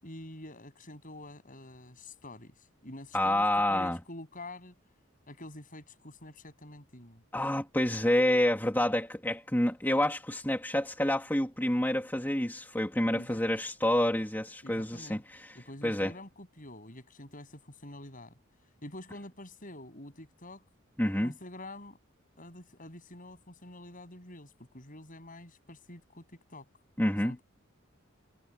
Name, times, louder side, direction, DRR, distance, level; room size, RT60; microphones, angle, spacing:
voice 1, 0.0-4.7 5.3-7.2 13.1-13.4 14.6-15.2 15.5-18.4 18.8-20.6 21.2-22.0 22.4-26.7 27.2-27.4, left 1 dB, 40° left, 8.0 m, -47 dB
voice 2, 3.1-4.0 7.3-15.6 15.8-16.1 21.0-21.3 27.0-27.3, left 1 dB, 10° left, 2.7 m, -28 dB
head